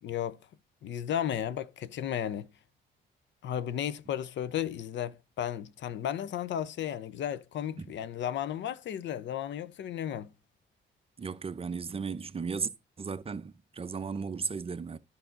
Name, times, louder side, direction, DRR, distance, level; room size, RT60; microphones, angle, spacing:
voice 1, 0.0-0.4 0.8-2.5 3.4-10.3, left 10 dB, 65° left, 0.6 m, -34 dB
voice 2, 11.2-12.7 13.0-15.0, right 5 dB, 30° right, 0.6 m, -35 dB
11.0 x 5.7 x 3.7 m
cardioid pair, 90°, 20 cm